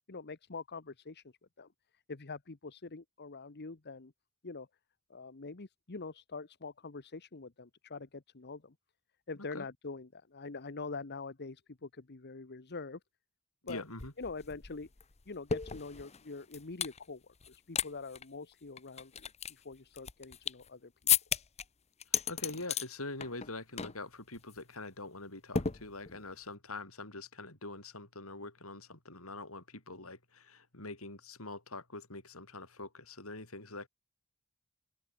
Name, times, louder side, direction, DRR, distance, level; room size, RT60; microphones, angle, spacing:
voice 1, 0.1-4.1 4.4-4.7 5.1-8.7 9.3-13.0 13.7-13.8 14.2-14.9 15.3-20.9, left 4 dB, 50° left, 1.1 m, -45 dB
voice 2, 13.6-14.1 22.1-33.9, left 2 dB, 70° left, 7.5 m, -44 dB
sound 1, 13.7-13.8 14.0-17.0 17.4-17.9 18.1-18.2 18.8-20.7 21.1-21.6 22.0-22.9 23.2-23.5 23.8-24.0 24.3-24.6 25.5-26.3, left 8 dB, 30° left, 0.9 m, -34 dB
open air
head